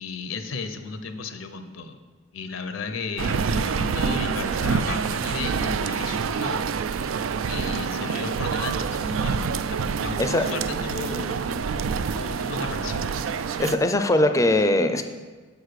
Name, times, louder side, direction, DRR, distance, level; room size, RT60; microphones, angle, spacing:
voice 1, 0.0-2.0 2.3-6.9 7.5-11.4 12.1-13.1, left 4 dB, 80° left, 8 dB, 0.6 m, -35 dB
sound 1, 3.2-13.8, right 5 dB, 80° right, 0.4 m, -27 dB
voice 2, 13.6-15.0, left 1 dB, 15° left, 8 dB, 0.4 m, -20 dB
6.4 x 4.8 x 6.6 m, 1.4 s
head